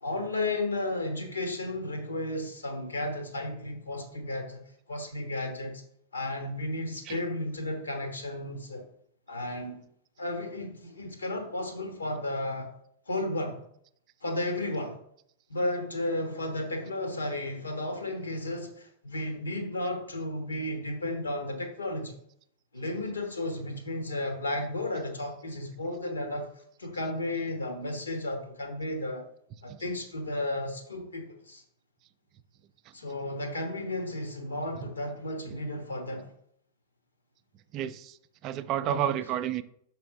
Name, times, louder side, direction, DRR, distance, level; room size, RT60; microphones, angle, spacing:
voice 1, 0.0-4.6 4.9-5.8 6.1-8.8 9.3-9.8 10.2-12.7 13.1-13.6 14.2-15.0 15.5-22.2 22.7-26.5 26.8-29.2 29.6-31.6 32.9-36.3 38.8-39.0, left 1 dB, 75° left, 1.2 m, -33 dB
voice 2, 37.7-38.2 38.4-39.6, right 11 dB, 40° right, 0.3 m, -30 dB
6.0 x 3.3 x 4.7 m
figure-of-eight pair, 90°, 0 cm